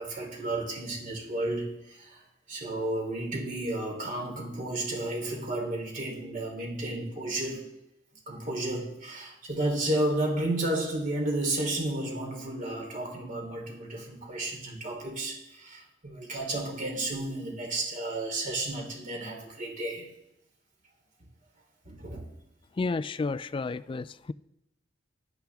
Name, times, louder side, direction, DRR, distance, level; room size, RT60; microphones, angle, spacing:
voice 1, 0.0-2.2 2.5-7.6 8.3-20.1 21.8-22.3, right 1 dB, 45° right, 3.4 m, -32 dB
voice 2, 22.8-24.3, left 3 dB, 25° left, 0.3 m, -31 dB
13.5 x 11.5 x 3.6 m
head